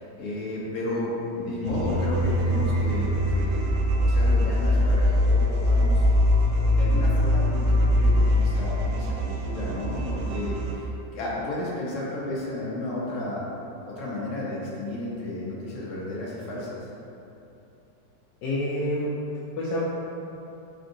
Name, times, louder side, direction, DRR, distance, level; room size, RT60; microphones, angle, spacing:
voice 1, 0.0-6.0 6.7-13.4 13.8-16.9, left 2 dB, 55° left, -6 dB, 0.9 m, -33 dB
voice 2, 1.6-2.1 18.4-19.1 19.6-19.8, left 1 dB, 75° left, -7 dB, 1.2 m, -29 dB
sound 1, 1.6-10.7, left 1 dB, 75° right, 1.1 m, -22 dB
3.7 x 3.5 x 2.6 m, 2.9 s
omnidirectional pair, 2.0 m